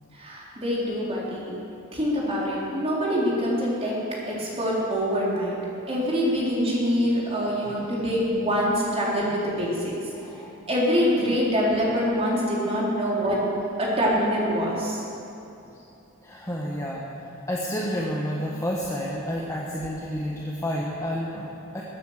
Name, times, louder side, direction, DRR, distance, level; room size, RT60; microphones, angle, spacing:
voice 1, 0.1-1.6 1.9-4.0 4.3-5.6 5.9-9.9 10.7-13.5 13.8-15.0, equal, 30° right, -5 dB, 3.9 m, -25 dB
voice 2, 7.6-7.9 10.1-10.5 15.7-15.8 16.2-21.8, equal, 15° left, -4 dB, 1.4 m, -30 dB
21.5 x 9.3 x 6.7 m, 2.8 s
head